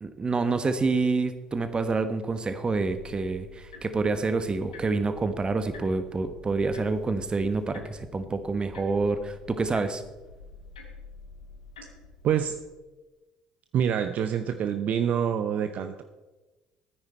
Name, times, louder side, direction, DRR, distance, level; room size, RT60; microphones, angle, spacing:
voice 1, 0.0-10.0, right 3 dB, 30° right, 10 dB, 1.3 m, -27 dB
sound 1, 2.7-12.6, left 3 dB, 90° left, 1.5 m, -48 dB
voice 2, 12.2-12.6 13.7-16.0, right 8 dB, 55° right, 9 dB, 0.6 m, -26 dB
13.5 x 9.7 x 4.4 m, 1.2 s
hypercardioid pair, 55°, 3 cm